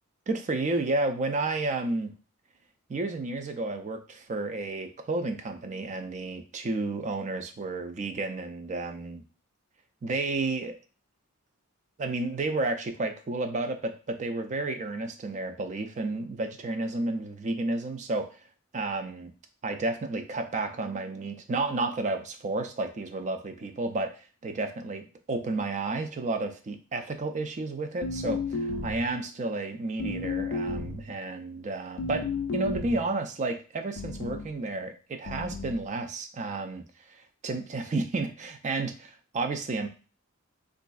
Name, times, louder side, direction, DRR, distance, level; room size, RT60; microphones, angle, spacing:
voice 1, 0.3-2.2 2.9-9.2 10.0-10.8 12.0-18.4 18.7-19.3 19.6-32.2 32.5-36.8 37.1-39.9, right 2 dB, 35° right, 7 dB, 0.4 m, -31 dB
sound 1, 28.0-29.1 30.0-31.1 32.0-33.1 34.0-34.5 35.3-35.8, left 3 dB, 60° left, 0.4 m, -33 dB
3.9 x 2.5 x 2.3 m, 0.36 s
head